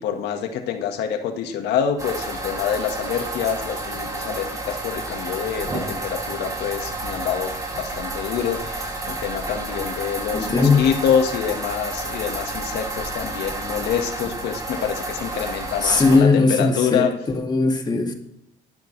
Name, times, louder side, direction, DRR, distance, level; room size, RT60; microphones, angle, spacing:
voice 1, 0.0-17.1, left 8 dB, 80° left, 5 dB, 1.6 m, -26 dB
sound 1, 2.0-16.2, right 2 dB, 20° right, 4.4 m, -30 dB
voice 2, 10.3-10.9 15.8-18.1, left 3 dB, 25° left, 3 dB, 2.1 m, -19 dB
19.5 x 11.5 x 3.3 m, 0.80 s
cardioid pair, 110°, 17 cm